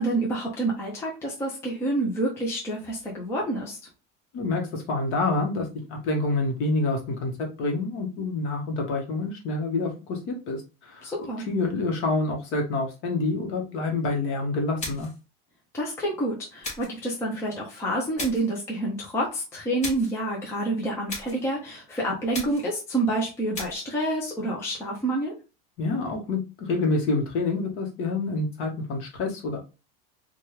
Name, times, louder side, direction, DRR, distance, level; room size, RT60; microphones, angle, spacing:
voice 1, 0.0-3.8 11.0-11.4 15.7-25.3, right 1 dB, 10° left, -3 dB, 0.5 m, -28 dB
voice 2, 4.3-11.1 11.5-15.1 25.8-29.6, left 3 dB, 45° left, 2 dB, 1.0 m, -27 dB
sound 1, 14.8-15.2 16.6-17.0 18.2-18.5 19.8-20.2 21.1-21.5 22.3-22.8 23.5-23.9, left 2 dB, 25° left, 1.1 m, -36 dB
3.4 x 2.3 x 2.9 m, 0.30 s
cardioid pair, 165°, 30 cm